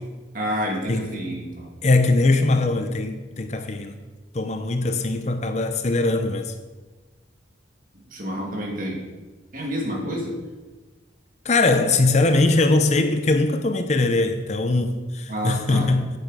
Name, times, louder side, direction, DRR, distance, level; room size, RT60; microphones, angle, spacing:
voice 1, 0.3-1.7 8.1-9.0 9.5-10.3 15.3-15.9, equal, 45° right, 2.2 m, -29 dB
voice 2, 0.9-1.3 1.8-4.0 4.3-6.5 11.4-16.1, left 2 dB, 35° left, 0.6 m, -21 dB
10.5 x 7.7 x 4.9 m
head